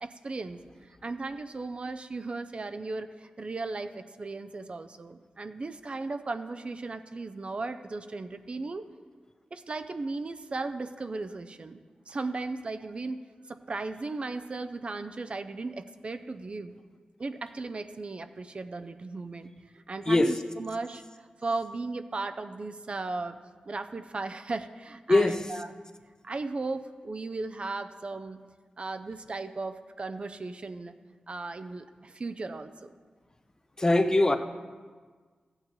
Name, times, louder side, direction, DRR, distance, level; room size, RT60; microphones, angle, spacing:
voice 1, 0.0-8.9 9.5-11.8 12.1-16.8 17.2-19.5 19.7-23.4 23.7-25.7 26.2-28.4 28.8-30.9 31.3-32.9, right 3 dB, 45° right, 9 dB, 0.5 m, -36 dB
voice 2, 33.8-34.4, left 2 dB, 25° left, 8 dB, 0.5 m, -21 dB
14.5 x 8.9 x 3.1 m, 1.5 s
wide cardioid pair, 90°, 3 cm